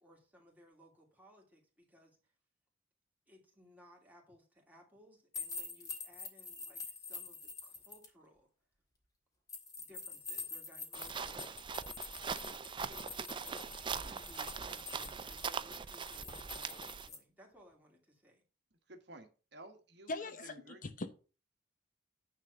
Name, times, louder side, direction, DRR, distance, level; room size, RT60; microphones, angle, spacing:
voice 1, 0.0-2.3 3.3-8.5 9.8-11.6 12.5-18.4, equal, 10° right, -1 dB, 2.7 m, -61 dB
sound 1, 5.3-8.1 9.5-17.2, left 4 dB, 20° left, 1.7 m, -46 dB
sound 2, 10.9-17.1, right 6 dB, 25° right, 0.4 m, -41 dB
voice 2, 18.9-20.8, right 1 dB, 60° right, 6 dB, 1.4 m, -54 dB
voice 3, 20.1-21.1, left 2 dB, 45° left, 10 dB, 0.8 m, -41 dB
9.5 x 3.7 x 6.8 m, 0.35 s
head